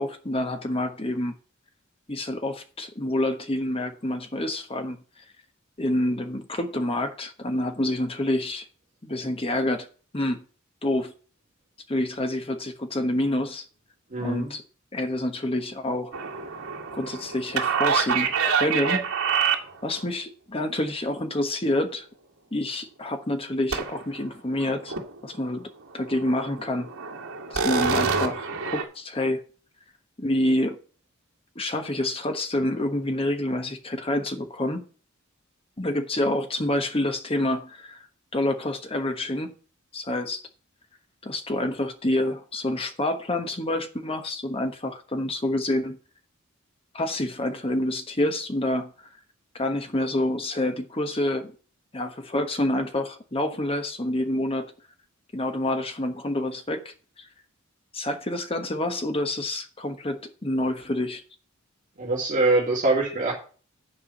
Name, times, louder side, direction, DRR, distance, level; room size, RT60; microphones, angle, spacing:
voice 1, 0.0-1.4 2.1-5.2 5.8-8.6 9.0-9.9 10.1-10.4 10.8-11.1 11.9-13.7 14.2-14.6 14.9-16.1 16.9-19.1 19.8-22.1 22.5-24.9 25.2-25.7 25.9-26.9 27.5-29.4 30.2-30.8 31.5-34.9 35.8-38.1 38.3-39.5 39.9-40.4 41.2-46.0 46.9-48.9 49.5-51.5 51.9-54.7 55.3-57.3 57.9-61.2, left 1 dB, 25° left, 1.2 m, -27 dB
voice 2, 14.1-14.5 62.0-63.3, right 2 dB, 40° right, 2.4 m, -23 dB
sound 1, 16.1-20.0 23.7-24.2 24.5-25.2 25.5-25.6 26.0-28.8, right 6 dB, 90° right, 2.2 m, -27 dB
9.9 x 4.9 x 7.0 m
head